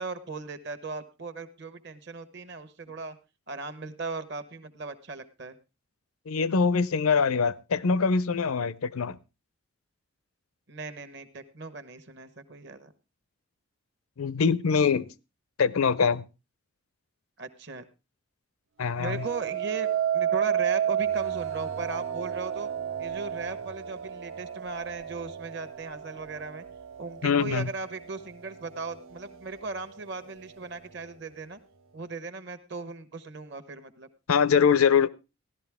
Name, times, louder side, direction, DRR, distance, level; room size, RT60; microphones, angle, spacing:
voice 1, 0.0-3.2 3.5-5.6 10.7-12.9 17.4-17.8 19.0-22.7 23.0-26.6 27.0-31.6 31.9-34.1, right 3 dB, 55° right, 1.1 m, -38 dB
voice 2, 6.3-9.2 14.2-15.1 15.6-16.2 18.8-19.2 27.2-27.7 34.3-35.1, left 6 dB, 85° left, 0.6 m, -23 dB
sound 1, 19.0-28.1 28.7-29.1, right 9 dB, 70° right, 0.7 m, -31 dB
15.5 x 12.0 x 3.5 m
head